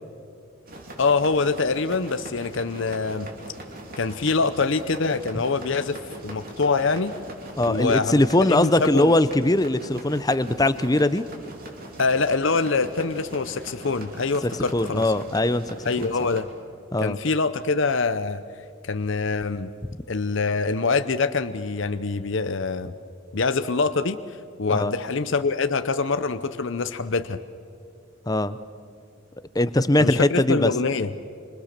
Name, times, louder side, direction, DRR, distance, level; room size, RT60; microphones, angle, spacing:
sound 1, 0.7-16.4, right 1 dB, 40° right, 3.2 m, -41 dB
voice 1, 1.0-3.3 4.0-6.0 6.2-7.1 7.7-9.1 12.0-15.1 15.8-16.5 17.0-18.4 18.8-19.7 20.1-22.9 23.3-24.2 24.6-27.4 30.0-31.1, left 4 dB, 60° left, 11 dB, 0.7 m, -24 dB
voice 2, 7.6-11.2 14.7-16.1 16.9-17.2 24.7-24.9 28.3-28.6 29.5-30.7, left 1 dB, 15° left, 13 dB, 0.7 m, -21 dB
27.0 x 26.5 x 6.7 m, 2.5 s
head